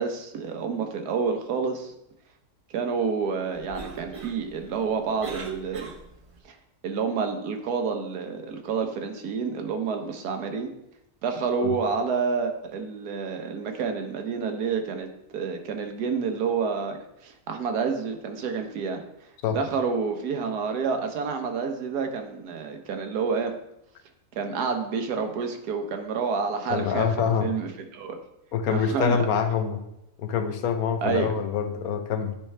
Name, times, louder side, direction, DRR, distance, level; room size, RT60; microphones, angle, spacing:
voice 1, 0.0-1.9 2.7-5.9 6.4-6.5 6.8-10.7 11.2-19.0 19.5-23.5 24.3-27.1 27.4-28.2 28.7-29.2 31.0-31.3, right 5 dB, 90° right, 5 dB, 1.4 m, -29 dB
Cough, 3.5-6.4, right 5 dB, 35° right, 0.5 m, -39 dB
voice 2, 26.7-27.5 28.5-29.8 30.2-32.3, left 7 dB, 75° left, 8 dB, 1.1 m, -25 dB
9.9 x 4.4 x 3.3 m, 0.82 s
omnidirectional pair, 1.6 m